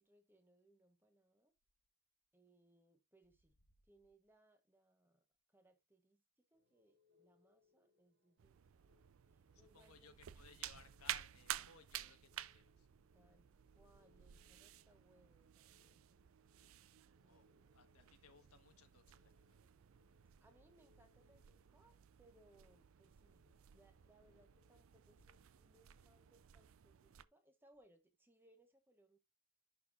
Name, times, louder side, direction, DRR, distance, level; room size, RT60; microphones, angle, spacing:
voice 1, 0.0-1.5 2.3-3.5 3.8-6.2 6.5-8.8 9.3-10.4 13.1-16.2 17.2-17.7 18.0-18.2 20.4-29.2, right 1 dB, 10° right, 1.2 m, -72 dB
sound 1, 6.5-26.0, left 4 dB, 55° right, 1.2 m, -79 dB
sound 2, 8.4-27.2, right 12 dB, 70° right, 0.4 m, -53 dB
voice 2, 9.5-12.9 17.2-17.5 17.7-19.4, left 5 dB, 90° left, 1.5 m, -64 dB
11.0 x 4.3 x 2.6 m
head